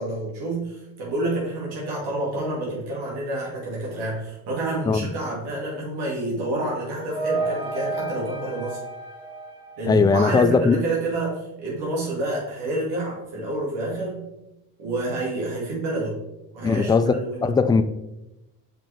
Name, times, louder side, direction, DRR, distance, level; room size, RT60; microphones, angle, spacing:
voice 1, 0.0-8.8 9.8-14.2 14.8-16.2 16.5-17.5, right 2 dB, 70° right, 2.2 m, -28 dB
sound 1, 6.4-10.3, right 3 dB, 10° right, 2.3 m, -31 dB
voice 2, 9.9-10.8 16.6-17.8, left 4 dB, 10° left, 0.3 m, -19 dB
7.5 x 5.1 x 3.4 m
supercardioid pair, 80°, 41 cm